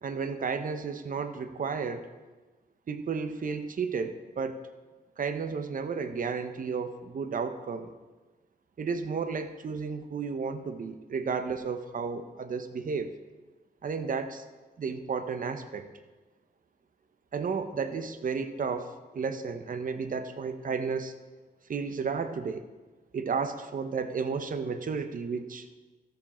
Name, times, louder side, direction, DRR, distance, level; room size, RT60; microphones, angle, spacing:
voice 1, 0.0-2.1 2.9-4.6 5.2-7.9 8.8-13.2 13.8-14.4 14.8-15.9 17.3-21.1 21.7-22.7 23.1-25.6, right 5 dB, 55° right, 9 dB, 0.9 m, -33 dB
13.5 x 7.4 x 4.4 m, 1.2 s
cardioid pair, 80°, 17 cm